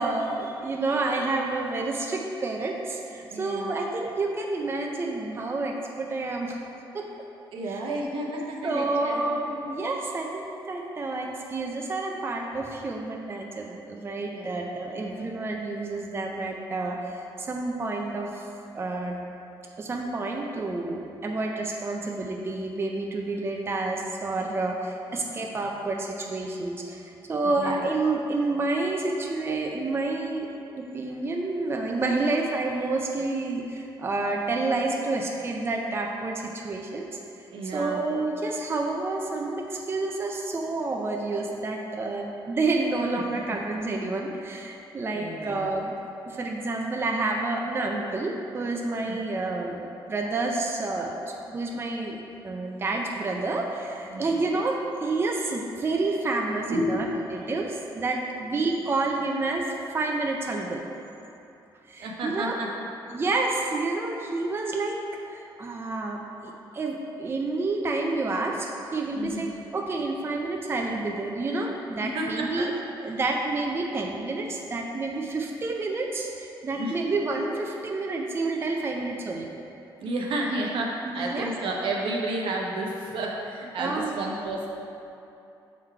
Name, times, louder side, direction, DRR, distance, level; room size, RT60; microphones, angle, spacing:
voice 1, 0.0-6.6 6.9-7.1 7.7-7.8 8.6-18.5 18.7-19.2 19.8-27.0 27.3-30.5 30.8-37.1 37.4-37.5 37.7-45.9 46.2-57.1 57.3-59.7 59.9-60.8 61.9-62.5 63.1-65.0 65.3-72.7 73.0-79.5 81.0-81.5 83.8-84.3, right 3 dB, 25° right, 1 dB, 0.5 m, -29 dB
voice 2, 3.3-3.7 7.5-9.4 14.3-14.7 14.9-15.3 27.5-27.9 37.5-38.0 45.1-45.6 54.1-54.4 56.7-57.0 58.5-58.6 62.0-62.7 69.1-69.4 72.0-72.7 76.8-76.9 80.0-84.7, right 1 dB, 75° right, -1 dB, 0.9 m, -31 dB
6.1 x 3.8 x 4.5 m, 2.7 s
cardioid pair, 105°, 9 cm